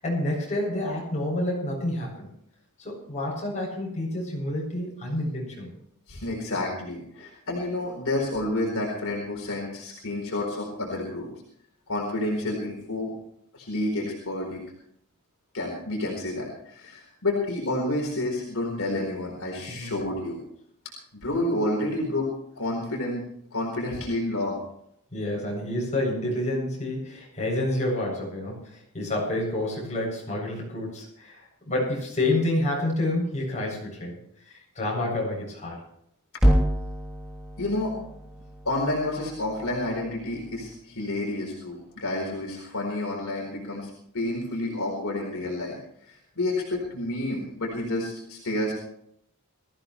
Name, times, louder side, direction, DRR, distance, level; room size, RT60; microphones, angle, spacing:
voice 1, 0.0-2.3 2.8-5.7 19.7-19.9 25.1-34.2 34.5-35.8, left 1 dB, 35° left, -2 dB, 7.8 m, -29 dB
voice 2, 6.1-11.3 11.9-13.1 13.5-14.6 15.5-20.4 21.1-22.3 22.5-23.2 23.5-24.6 37.6-37.9 38.6-45.8 46.1-48.7, left 1 dB, 65° left, -1 dB, 4.3 m, -29 dB
sound 1, 36.4-40.7, equal, 5° right, 3.1 m, -28 dB
21.5 x 15.0 x 3.2 m, 0.70 s
head